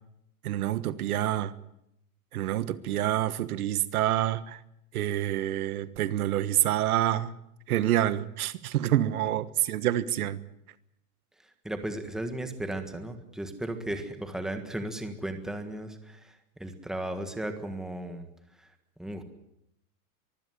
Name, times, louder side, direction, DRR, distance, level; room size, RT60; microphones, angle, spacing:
voice 1, 0.4-1.5 2.3-4.6 4.9-7.3 7.7-10.4, right 13 dB, 85° right, 1.5 m, -27 dB
voice 2, 11.6-18.3 18.6-18.7 19.0-19.2, right 1 dB, ahead, 1.6 m, -35 dB
24.5 x 15.5 x 9.6 m
supercardioid pair, 170°, 43 cm